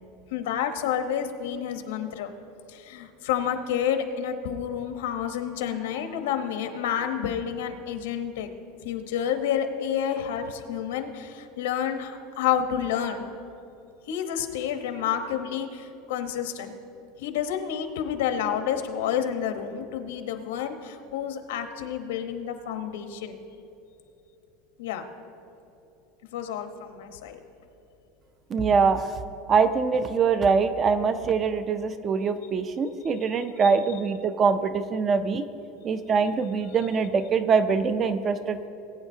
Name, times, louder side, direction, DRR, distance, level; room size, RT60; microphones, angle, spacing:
voice 1, 0.3-2.3 2.7-8.5 8.8-13.3 14.1-16.7 17.2-23.4 24.8-25.0 26.3-27.4 33.6-33.7, left 9 dB, 85° left, 7 dB, 1.0 m, -29 dB
voice 2, 28.5-29.1 29.5-35.4 35.8-38.7, right 5 dB, 20° right, 11 dB, 0.4 m, -23 dB
19.5 x 8.9 x 2.7 m, 2.9 s
supercardioid pair, 175°, 0 cm